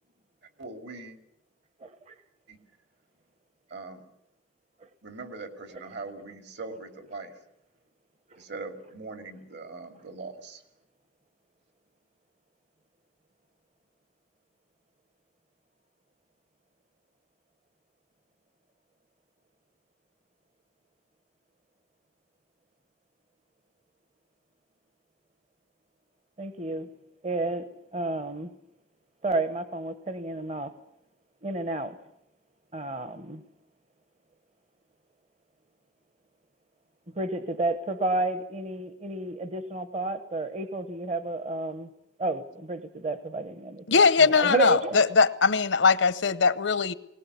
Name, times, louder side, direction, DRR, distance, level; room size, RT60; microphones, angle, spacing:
voice 1, 0.6-1.2 2.5-2.6 3.7-4.1 5.0-7.3 8.4-10.6, right 3 dB, 65° right, 2.7 m, -41 dB
voice 2, 1.8-2.1 5.7-5.8 26.4-26.9 27.2-28.5 29.2-30.7 31.4-32.0 32.7-33.4 37.1-41.9 42.2-45.2, right 2 dB, 35° right, 1.0 m, -31 dB
voice 3, 43.9-46.9, left 5 dB, 80° left, 0.9 m, -21 dB
20.0 x 19.0 x 8.3 m
head